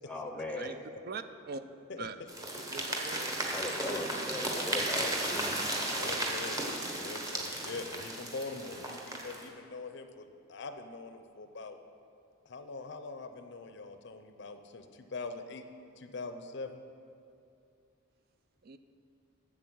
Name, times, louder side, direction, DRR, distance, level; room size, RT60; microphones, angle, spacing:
voice 1, 0.1-0.8 3.5-6.0, left 1 dB, 5° left, 3 dB, 0.7 m, -39 dB
voice 2, 1.1-1.6 2.0-2.1 2.7-3.3 18.7-18.8, right 4 dB, 50° right, 11 dB, 0.4 m, -41 dB
voice 3, 1.9-2.3 2.6-2.7 2.9-3.0 6.0-11.8 12.5-15.6 16.0-16.8, left 3 dB, 60° left, 8 dB, 0.5 m, -43 dB
sound 1, 2.3-9.5, right 1 dB, 15° right, 1.0 m, -35 dB
7.9 x 7.6 x 6.2 m, 2.5 s
head